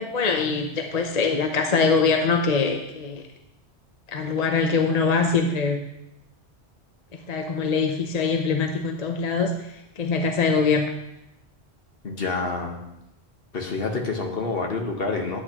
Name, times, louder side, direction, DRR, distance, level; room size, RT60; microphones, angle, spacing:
voice 1, 0.0-3.2 4.1-5.8 7.3-9.5 10.0-10.8, left 4 dB, 40° left, 4 dB, 0.7 m, -23 dB
voice 2, 12.0-12.8 13.5-15.4, left 3 dB, 60° left, 1 dB, 1.4 m, -27 dB
11.0 x 8.3 x 2.9 m, 0.86 s
omnidirectional pair, 1.1 m